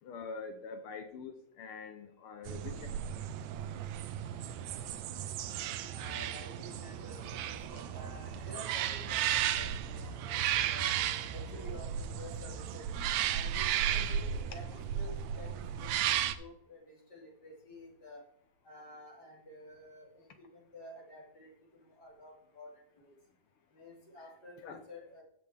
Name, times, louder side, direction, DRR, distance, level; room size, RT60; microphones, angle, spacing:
voice 1, 0.0-3.0 10.2-11.8 24.6-24.8, left 5 dB, 75° left, 8 dB, 1.3 m, -46 dB
sound 1, 2.5-16.3, right 10 dB, 80° right, 1.8 m, -34 dB
voice 2, 5.9-10.4 10.7-10.9 11.3-12.9 13.3-18.2 18.6-23.1 23.7-25.2, left 1 dB, 35° left, -3 dB, 3.2 m, -51 dB
16.0 x 5.7 x 3.4 m, 0.69 s
omnidirectional pair, 3.4 m